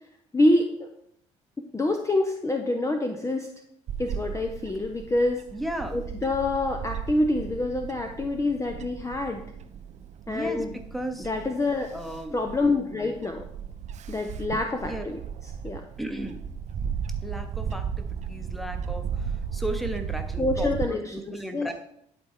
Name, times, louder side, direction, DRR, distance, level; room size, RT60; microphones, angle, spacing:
voice 1, 0.3-0.9 1.7-3.5 4.0-5.4 5.9-9.4 10.3-10.8 11.2-11.9 12.3-13.4 14.1-15.2 15.6-15.8 20.4-21.2 21.5-21.7, left 2 dB, 20° left, 4 dB, 0.8 m, -26 dB
Bird / Wind, 3.9-20.9, right 7 dB, 50° right, 0.5 m, -35 dB
voice 2, 5.5-6.0 10.3-10.6 10.9-11.3 11.9-12.4 14.8-15.0 16.0-16.4 17.2-21.7, right 1 dB, ahead, 7 dB, 1.2 m, -35 dB
11.0 x 4.3 x 3.6 m, 0.73 s
figure-of-eight pair, 50°, 16 cm